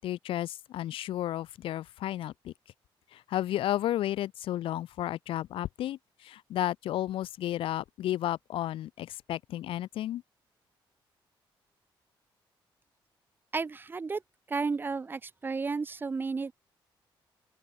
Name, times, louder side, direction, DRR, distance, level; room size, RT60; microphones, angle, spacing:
voice 1, 0.0-2.5 3.1-10.2, left 13 dB, 85° left, 6.6 m, -32 dB
voice 2, 13.5-14.2 14.5-16.5, right 4 dB, 25° right, 2.3 m, -32 dB
open air
cardioid pair, 165°, 9 cm